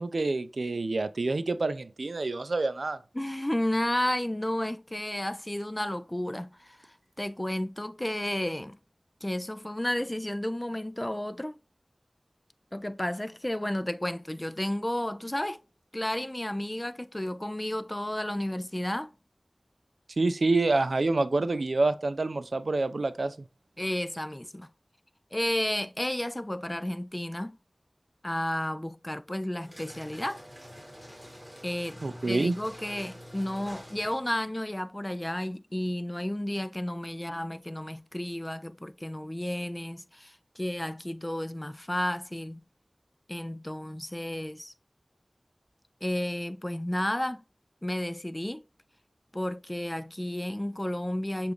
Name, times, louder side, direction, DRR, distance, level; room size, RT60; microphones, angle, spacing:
voice 1, 0.0-3.0 20.2-23.3 32.0-32.6, right 3 dB, 85° right, 0.3 m, -27 dB
voice 2, 3.1-8.8 9.2-11.6 12.7-15.6 15.9-19.1 23.8-24.7 25.3-27.6 28.2-30.4 31.6-42.6 43.3-44.7 46.0-47.4 47.8-48.6 49.3-51.5, left 1 dB, 20° left, 0.4 m, -32 dB
sound 1, 29.6-34.4, equal, 5° right, 1.6 m, -47 dB
6.9 x 2.4 x 3.1 m
wide cardioid pair, 40°, 0 cm